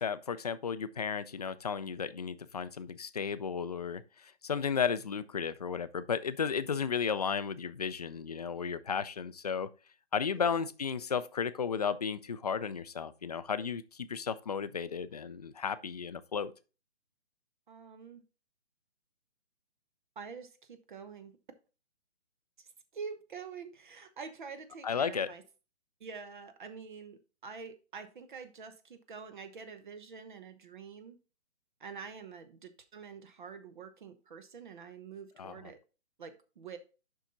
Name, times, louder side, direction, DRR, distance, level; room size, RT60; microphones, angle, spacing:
voice 1, 0.0-9.7 10.1-16.5 24.8-25.3 35.4-35.6, left 6 dB, 35° left, 0.4 m, -34 dB
voice 2, 10.3-10.6 17.7-18.2 20.2-21.4 22.6-22.7 22.9-25.4 26.0-31.2 31.8-35.8 36.2-36.8, right 5 dB, 45° right, 1.1 m, -46 dB
7.2 x 5.7 x 3.8 m
hypercardioid pair, 160°, 34 cm